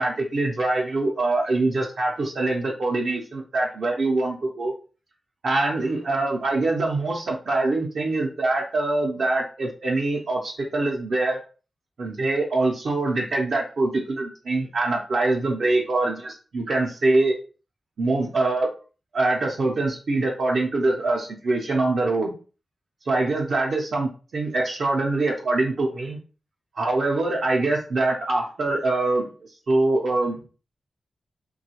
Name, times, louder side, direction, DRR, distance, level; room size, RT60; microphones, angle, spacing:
voice 1, 0.0-4.7 5.4-11.4 12.0-17.3 18.0-18.7 19.1-22.3 23.1-26.2 26.7-29.3 29.7-30.5, right 2 dB, 60° right, -2 dB, 0.6 m, -24 dB
3.0 x 2.3 x 2.8 m, 0.36 s
wide cardioid pair, 140°, 0 cm